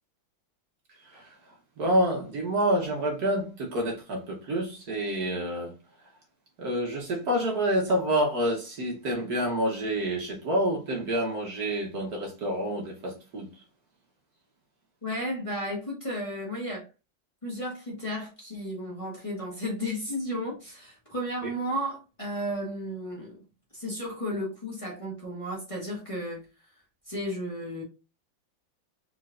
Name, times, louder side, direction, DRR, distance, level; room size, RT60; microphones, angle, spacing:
voice 1, 1.8-5.7 6.6-13.6 21.4-21.5, right 1 dB, 60° right, 1.5 m, -28 dB
voice 2, 15.0-16.9 17.4-23.4 23.7-26.4 27.1-27.8, equal, 20° left, 1.5 m, -33 dB
4.4 x 4.2 x 2.5 m
omnidirectional pair, 2.1 m